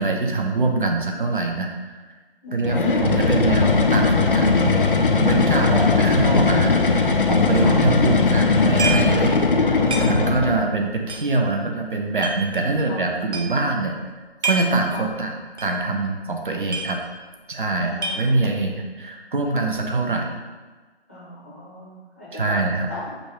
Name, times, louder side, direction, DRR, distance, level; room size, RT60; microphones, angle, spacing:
voice 1, 0.0-1.7 2.5-4.8 5.1-14.0 14.4-15.4 15.6-17.0 17.5-20.3 22.3-22.9, right 3 dB, 50° right, 2 dB, 0.6 m, -24 dB
voice 2, 2.4-3.3 4.3-4.5 5.6-6.1 7.6-7.8 10.1-10.6 12.9-13.1 14.9-15.0 17.8-18.4 21.1-22.5 22.9-23.2, left 2 dB, 10° left, -10 dB, 0.7 m, -37 dB
sound 1, 2.6-10.7, left 4 dB, 55° left, 0.4 m, -19 dB
sound 2, 8.8-9.2 9.5-9.6 9.9-10.4 11.0-12.4 12.9-13.0 13.2-13.7 14.2-14.8 15.1-15.2 15.6-16.1 16.4-17.3 17.6-18.6, right 3 dB, 80° right, 0.8 m, -28 dB
5.2 x 2.3 x 4.3 m, 1.3 s
figure-of-eight pair, 155°, 33 cm